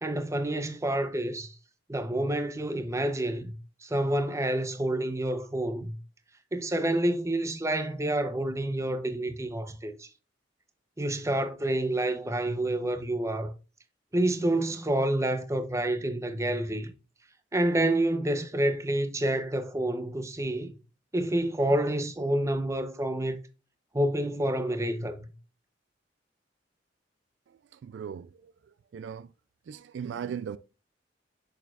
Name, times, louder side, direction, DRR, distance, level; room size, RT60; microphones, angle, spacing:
voice 1, 0.0-1.5 1.9-3.5 3.8-5.9 6.5-10.1 11.0-13.5 14.1-16.9 17.5-20.7 21.1-23.4 23.9-25.3, right 1 dB, 15° right, 0.7 m, -28 dB
voice 2, 27.8-28.3 28.9-29.3 29.7-30.6, right 7 dB, 70° right, 0.3 m, -37 dB
6.7 x 6.4 x 2.4 m
head